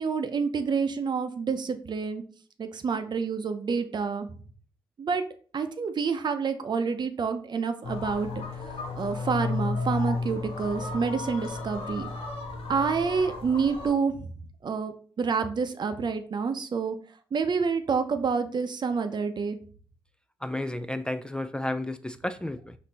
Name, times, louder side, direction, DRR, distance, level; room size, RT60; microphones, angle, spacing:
voice 1, 0.0-2.2 2.6-4.3 5.0-5.2 5.5-8.3 9.0-12.1 12.7-14.3 14.6-17.0 17.3-19.6, right 5 dB, 50° right, 8 dB, 0.6 m, -28 dB
sound 1, 7.8-13.9, left 3 dB, 75° left, 0.9 m, -33 dB
voice 2, 20.4-22.7, left 1 dB, 10° left, 10 dB, 0.3 m, -32 dB
4.4 x 2.7 x 4.0 m, 0.43 s
supercardioid pair, 55°, 10 cm